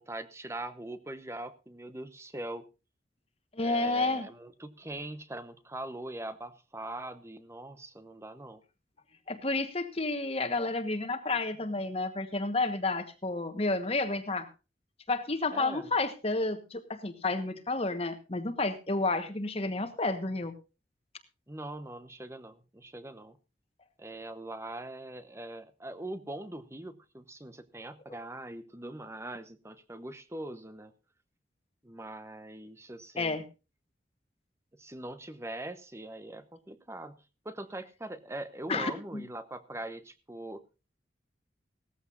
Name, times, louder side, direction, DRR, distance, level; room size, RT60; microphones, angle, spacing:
voice 1, 0.0-2.7 3.6-8.6 15.5-15.9 21.5-23.4 24.0-30.9 31.8-33.5 34.8-37.2 37.4-40.6, right 1 dB, 15° right, 12 dB, 1.0 m, -42 dB
voice 2, 3.5-4.3 9.3-14.5 15.1-20.5 33.2-33.4 38.7-39.2, left 2 dB, 35° left, 8 dB, 1.3 m, -31 dB
17.5 x 14.5 x 2.6 m, 0.30 s
head